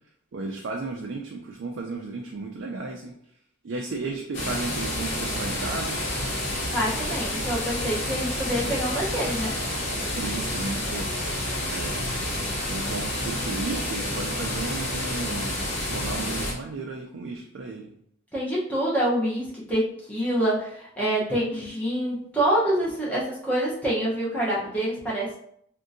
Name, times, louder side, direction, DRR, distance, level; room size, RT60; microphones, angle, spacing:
voice 1, 0.3-3.1 3.6-6.2 10.0-11.1 11.7-12.2 12.7-17.9, right 3 dB, 65° right, 0 dB, 0.4 m, -34 dB
sound 1, 4.3-16.5, left 1 dB, 60° left, 0.9 m, -29 dB
voice 2, 6.7-9.6 18.3-25.4, right 1 dB, 5° left, -6 dB, 0.8 m, -26 dB
3.6 x 2.5 x 2.6 m, 0.68 s
head